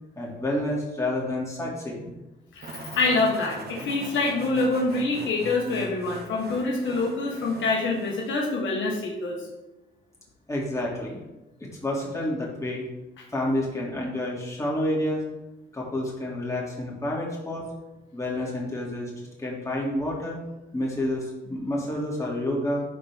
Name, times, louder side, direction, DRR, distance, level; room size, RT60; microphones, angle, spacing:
voice 1, 0.2-2.1 10.5-11.2 11.6-12.8 13.3-15.2 15.7-17.6 18.1-19.1 19.4-20.4 20.7-22.8, left 1 dB, 15° left, -3 dB, 2.7 m, -29 dB
voice 2, 2.5-9.4, left 3 dB, 75° left, -1 dB, 1.5 m, -26 dB
sound 1, 2.6-8.4, right 2 dB, 50° right, 1.4 m, -41 dB
11.0 x 4.3 x 3.6 m, 1.0 s
cardioid pair, 90°, 20 cm